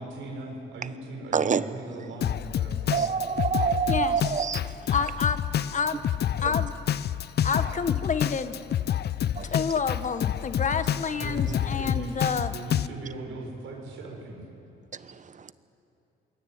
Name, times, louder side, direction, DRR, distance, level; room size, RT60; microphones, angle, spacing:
voice 1, 0.0-3.1 11.2-12.2 12.5-14.4, right 2 dB, 80° right, 0 dB, 7.0 m, -39 dB
voice 2, 1.3-1.6 2.9-4.9 6.4-6.5 9.4-9.5 14.9-15.5, right 6 dB, 40° right, 14 dB, 1.1 m, -27 dB
Drum kit, 2.2-12.9, left 10 dB, 55° left, 0.6 m, -28 dB
voice 3, 4.9-5.4 5.7-6.0 6.4-6.7 7.4-8.6 9.4-12.5, left 5 dB, 40° left, 10 dB, 1.6 m, -28 dB
27.0 x 22.0 x 9.7 m, 2.8 s
cardioid pair, 90°, 20 cm